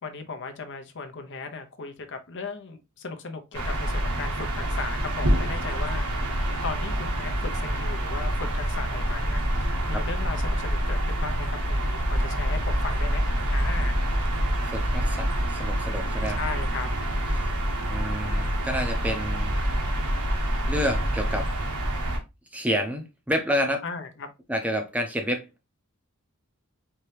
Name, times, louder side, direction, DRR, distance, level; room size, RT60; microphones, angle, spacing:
voice 1, 0.0-6.3 6.6-13.2 13.5-14.0 16.3-16.9 23.8-24.3, left 4 dB, 55° left, 0.7 m, -37 dB
sound 1, 3.5-22.2, equal, 90° right, 1.2 m, -26 dB
voice 2, 14.7-16.4 17.4-17.5 17.9-19.5 20.7-21.5 22.5-23.8 24.5-25.5, equal, 5° right, 0.6 m, -29 dB
4.5 x 2.8 x 3.2 m
head